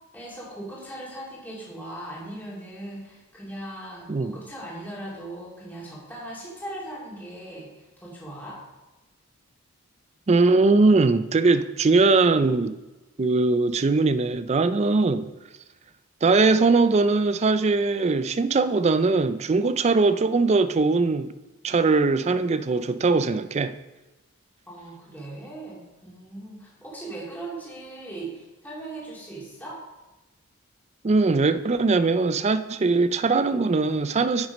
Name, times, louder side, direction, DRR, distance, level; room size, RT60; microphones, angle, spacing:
voice 1, 0.1-8.6 24.7-29.8, right 1 dB, 10° left, 2.6 m, -39 dB
voice 2, 10.3-12.8 13.2-15.3 16.2-21.3 21.6-23.7 31.0-34.5, right 3 dB, 30° right, 0.4 m, -21 dB
9.1 x 6.0 x 5.3 m
head